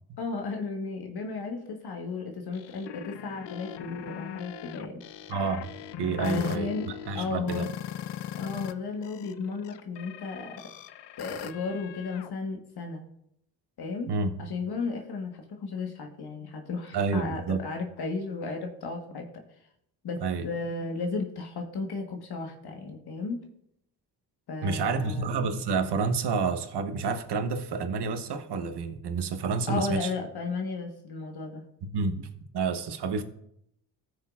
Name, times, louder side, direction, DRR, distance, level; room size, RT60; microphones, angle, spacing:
voice 1, 0.2-5.0 6.2-6.9 7.1-7.7 8.3-10.5 11.2-13.0 13.8-14.1 14.4-19.4 20.0-23.4 24.5-25.3 29.7-31.6, left 4 dB, 65° left, 3 dB, 1.4 m, -34 dB
sound 1, 2.5-8.7 9.0-12.3, left 11 dB, 85° left, 0.6 m, -39 dB
voice 2, 5.3-5.7 6.0-6.7 7.1-7.7 14.1-14.3 16.9-17.6 20.2-20.5 24.6-30.1 31.8-33.2, right 4 dB, 70° right, 8 dB, 1.1 m, -29 dB
16.0 x 6.5 x 2.4 m, 0.75 s
cardioid pair, 75°, 41 cm